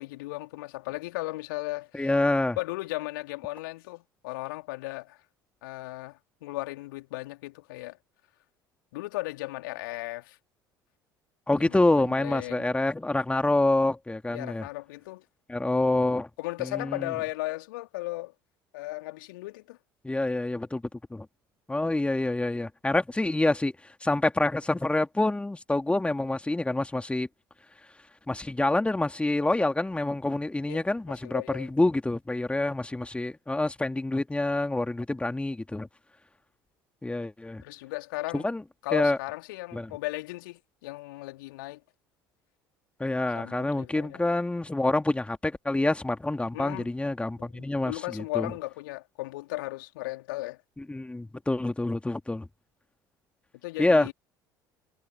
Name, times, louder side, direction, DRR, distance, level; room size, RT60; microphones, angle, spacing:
voice 1, 0.0-2.1 2.6-5.2 5.6-8.0 8.9-10.4 11.6-12.8 14.3-15.2 16.4-18.3 18.7-19.8 30.7-31.7 37.6-38.5 38.8-41.8 43.3-44.2 46.5-46.9 47.4-50.6 53.6-54.1, left 20 dB, 65° left, 4.1 m, -36 dB
voice 2, 1.9-2.6 11.5-14.6 15.5-16.3 16.6-17.1 20.0-21.3 21.7-23.7 24.0-27.3 28.3-35.9 37.0-37.6 38.3-38.6 38.9-39.2 39.7-39.9 43.0-48.5 50.8-52.5 53.8-54.1, left 2 dB, 10° left, 2.8 m, -27 dB
figure-of-eight pair, 60°, 12 cm